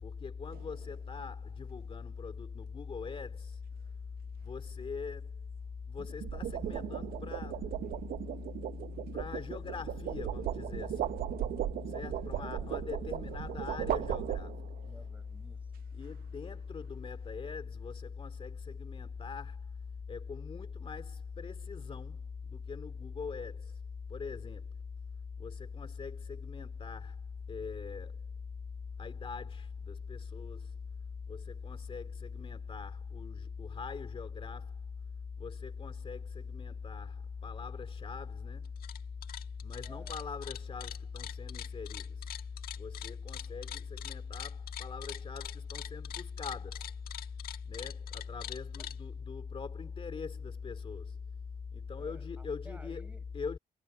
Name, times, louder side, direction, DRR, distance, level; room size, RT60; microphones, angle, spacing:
voice 1, 0.0-3.6 4.4-5.3 5.9-7.7 8.2-8.4 9.1-11.1 11.9-14.6 15.9-19.7 20.1-23.8 24.1-24.7 25.4-27.2 27.5-28.2 29.0-30.7 31.3-34.8 35.4-38.7 39.6-42.3 42.8-46.9 47.7-51.2 51.7-53.1 53.3-53.6, left 5 dB, 35° left, 2.4 m, -41 dB
sound 1, 0.5-0.8 6.0-14.9, right 12 dB, 75° right, 0.7 m, -37 dB
voice 2, 12.4-12.8 14.8-15.9 39.8-40.2 48.8-48.9 52.0-53.3, right 1 dB, 10° right, 7.8 m, -55 dB
sound 2, 38.7-39.0 39.2-49.0, left 11 dB, 80° left, 1.5 m, -43 dB
cardioid pair, 105°, 15 cm